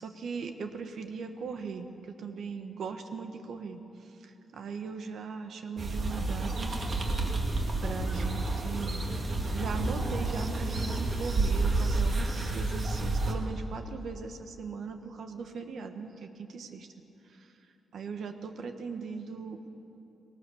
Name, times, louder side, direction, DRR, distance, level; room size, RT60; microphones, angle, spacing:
voice 1, 0.0-6.8 7.8-16.9 17.2-17.6 17.9-19.7, right 5 dB, 65° right, 6 dB, 1.3 m, -39 dB
sound 1, 5.8-13.3, right 2 dB, 35° right, 2.1 m, -30 dB
20.5 x 19.0 x 7.1 m, 2.9 s
wide cardioid pair, 145°, 0 cm